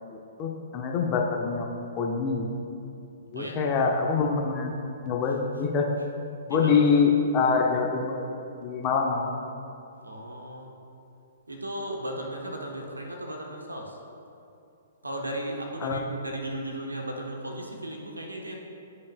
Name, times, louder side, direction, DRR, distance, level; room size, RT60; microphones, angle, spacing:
voice 1, 0.1-1.7 2.0-2.5 3.3-4.7 5.0-5.9 6.5-8.3 8.6-9.3 15.8-16.0, left 5 dB, 25° left, 1 dB, 0.8 m, -25 dB
voice 2, 6.5-7.0 10.0-10.7 11.5-14.0 15.0-18.6, right 1 dB, 80° right, 1 dB, 1.0 m, -36 dB
13.0 x 5.3 x 2.2 m, 2.7 s
figure-of-eight pair, 115°, 0 cm